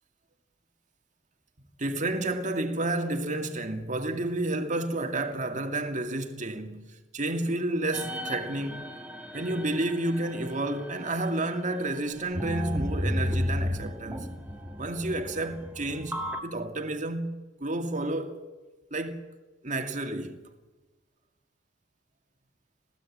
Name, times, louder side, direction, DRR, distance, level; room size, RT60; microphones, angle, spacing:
voice 1, 1.8-8.9 9.3-14.4 14.8-18.4 18.9-19.2 19.6-20.4, right 2 dB, 40° right, 2.1 m, -31 dB
sound 1, 7.9-11.6 12.3-16.4, equal, 10° right, 1.8 m, -34 dB
26.5 x 16.5 x 8.5 m
head